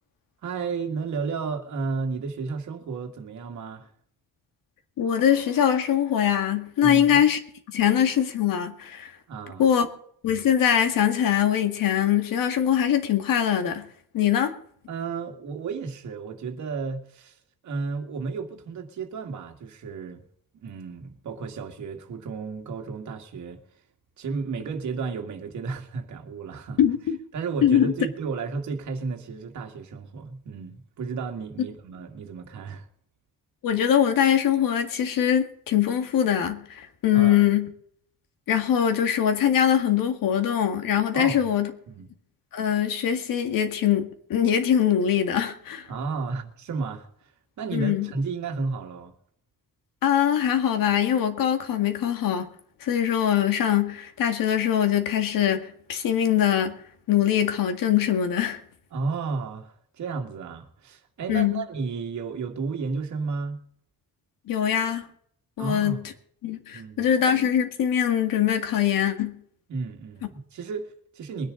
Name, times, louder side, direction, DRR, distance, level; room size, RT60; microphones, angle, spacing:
voice 1, 0.4-3.9 6.8-7.2 9.3-9.7 14.9-17.4 17.6-20.2 20.6-23.6 24.2-26.8 27.3-32.9 37.1-37.4 41.1-41.4 41.9-42.1 45.9-47.3 47.6-49.1 58.9-63.6 65.6-66.0 66.7-67.0 69.7-71.5, right 4 dB, 55° right, 2.2 m, -33 dB
voice 2, 5.0-7.4 7.7-9.2 9.6-9.9 10.2-13.9 14.1-14.5 26.8-27.2 27.6-27.9 33.6-37.7 38.5-41.7 42.5-45.9 47.7-48.1 50.0-52.5 52.8-56.8 57.1-58.6 61.3-61.6 64.5-65.1 65.6-66.0 66.4-69.3, left 9 dB, 70° left, 2.0 m, -22 dB
22.5 x 10.5 x 3.9 m
cardioid pair, 170°, 34 cm